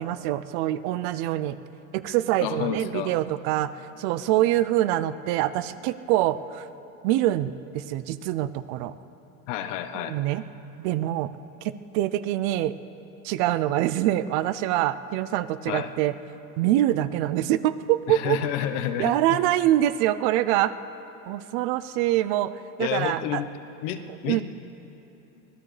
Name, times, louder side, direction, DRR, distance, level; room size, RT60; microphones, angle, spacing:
voice 1, 0.0-1.6 1.9-3.7 4.0-6.7 7.0-8.9 9.9-10.4 10.8-11.3 11.6-12.7 13.2-16.1 16.6-18.4 19.0-20.7 21.3-22.5 22.8-23.4 24.3-24.4, right 14 dB, 50° right, 14 dB, 0.5 m, -25 dB
voice 2, 2.4-3.1 9.5-10.2 15.7-15.9 18.1-19.4 22.8-23.5 23.8-24.4, left 10 dB, 60° left, 9 dB, 1.0 m, -30 dB
24.5 x 17.5 x 3.3 m, 2.9 s
supercardioid pair, 155°, 44 cm